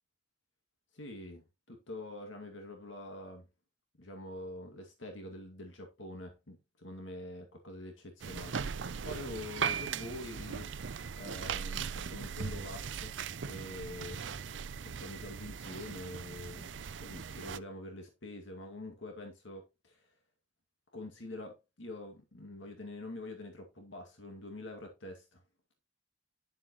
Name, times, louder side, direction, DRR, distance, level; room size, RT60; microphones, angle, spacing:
voice 1, 0.9-3.5 4.0-10.7 11.1-13.1 13.4-14.2 14.8-16.7 17.0-20.1 20.9-25.4, left 2 dB, 80° left, 2.2 m, -45 dB
sound 1, 8.2-17.6, right 6 dB, 75° right, 0.6 m, -39 dB
11.0 x 7.5 x 3.0 m
head